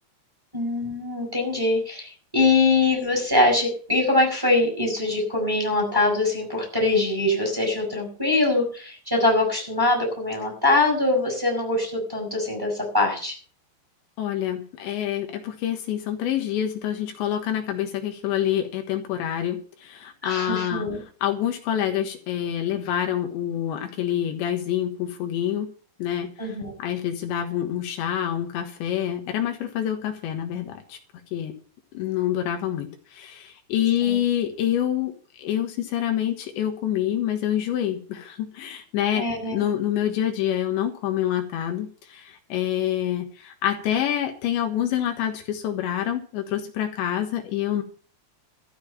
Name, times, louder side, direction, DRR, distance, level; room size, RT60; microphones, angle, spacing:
voice 1, 0.5-13.4 20.2-21.0 26.4-26.7 34.0-34.2 39.2-39.7, left 2 dB, 5° right, 2 dB, 5.3 m, -23 dB
voice 2, 14.2-20.9 21.2-25.7 26.0-26.3 26.8-31.0 31.3-31.5 32.0-35.1 35.4-47.8, left 10 dB, 75° left, 5 dB, 3.6 m, -27 dB
14.0 x 6.9 x 8.9 m, 0.40 s
omnidirectional pair, 5.3 m